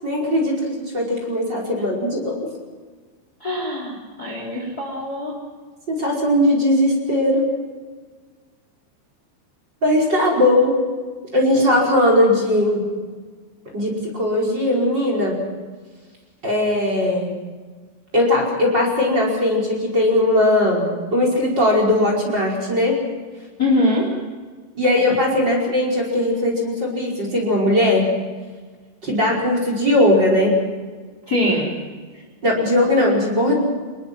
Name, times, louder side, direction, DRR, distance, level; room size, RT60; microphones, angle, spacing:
voice 1, 0.0-0.5 0.9-2.4 5.9-7.5 9.8-10.7 11.3-12.8 13.7-15.4 16.4-17.3 18.1-23.0 24.8-28.1 29.0-30.6 32.4-33.6, left 1 dB, 25° right, -1 dB, 5.5 m, -19 dB
voice 2, 3.4-5.4 23.6-24.1 31.3-31.7, left 1 dB, 20° left, 1 dB, 3.7 m, -22 dB
27.0 x 21.5 x 6.2 m, 1.5 s
omnidirectional pair, 5.1 m